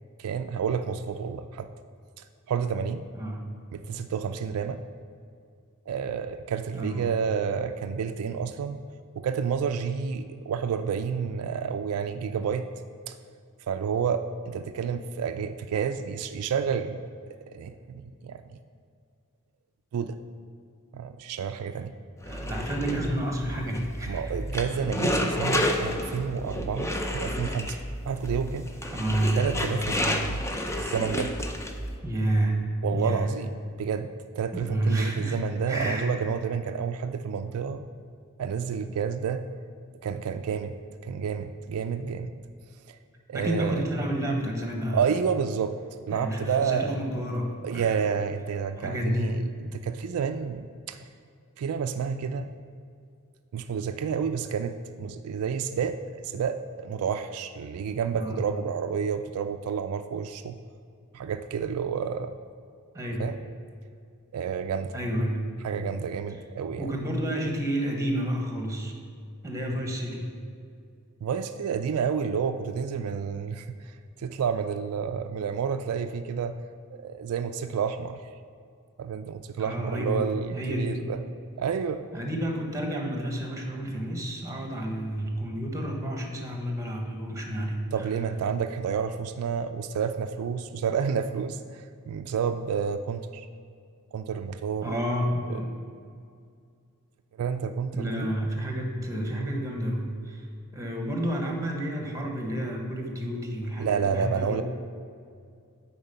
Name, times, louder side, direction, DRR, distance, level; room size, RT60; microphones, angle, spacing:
voice 1, 0.2-1.7 2.2-3.0 3.7-4.8 5.9-8.8 9.2-12.7 13.1-13.2 13.7-17.0 17.5-18.6 19.9-20.2 20.9-21.9 24.1-27.8 28.1-28.7 29.4-30.4 30.8-31.3 32.8-37.9 38.4-39.5 40.0-40.7 41.0-42.3 42.9-43.0 43.3-43.8 44.9-45.8 46.1-47.0 47.6-51.0 51.6-52.5 53.5-56.0 56.2-60.6 61.1-62.3 63.2-63.4 64.3-64.9 65.6-66.9 71.2-76.6 76.9-78.2 79.0-81.2 81.6-82.0 87.9-93.5 94.1-95.0 95.5-95.6 97.4-98.3 103.8-104.6, right 6 dB, 75° right, 8 dB, 0.3 m, -30 dB
voice 2, 3.1-3.4 6.7-7.1 22.3-24.2 28.9-29.4 32.0-32.7 32.9-33.3 34.5-36.1 43.3-45.1 46.1-47.9 48.8-49.3 58.1-58.5 62.9-63.3 64.9-65.4 66.8-68.9 69.4-70.3 79.6-81.0 82.1-88.1 94.8-95.7 97.9-100.4 100.7-104.6, right 1 dB, 15° right, 2 dB, 1.1 m, -30 dB
sound 1, 22.2-31.9, left 1 dB, 15° left, 0.5 m, -30 dB
8.8 x 4.4 x 5.5 m, 2.3 s
head